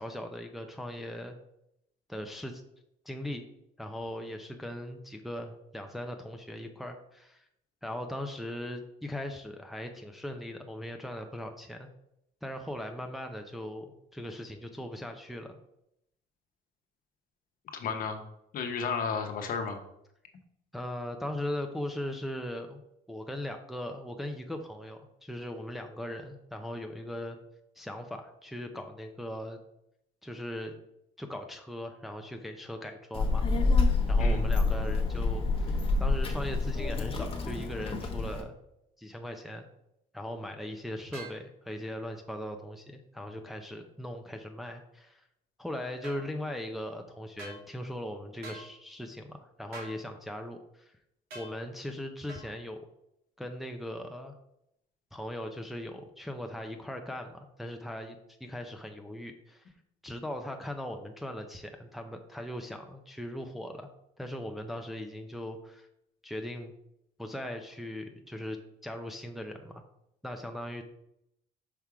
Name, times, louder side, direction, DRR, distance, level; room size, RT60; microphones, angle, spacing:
voice 1, 0.0-1.4 2.1-2.6 3.1-3.4 3.8-7.4 7.8-11.9 12.4-15.6 20.7-22.8 23.1-27.4 27.8-29.6 30.2-30.8 31.2-33.4 34.1-38.5 39.0-39.6 40.1-45.2 45.6-50.9 51.3-52.8 53.4-54.3 55.1-59.7 60.0-63.9 64.2-65.9 66.2-66.7 67.2-69.8 70.2-70.8, left 1 dB, ahead, 4 dB, 0.6 m, -39 dB
voice 2, 17.7-18.2 18.5-19.8 34.2-34.4, left 5 dB, 55° left, 5 dB, 1.0 m, -33 dB
Child speech kid speaking, 33.1-38.4, left 3 dB, 35° left, 1.0 m, -27 dB
sound 1, 41.1-41.4 46.0-46.2 47.4-47.6 48.4-48.7 49.7-50.0 51.3-51.5 52.3-52.5, right 2 dB, 75° right, 2.1 m, -44 dB
5.9 x 3.5 x 4.8 m, 0.78 s
cardioid pair, 110°, 17 cm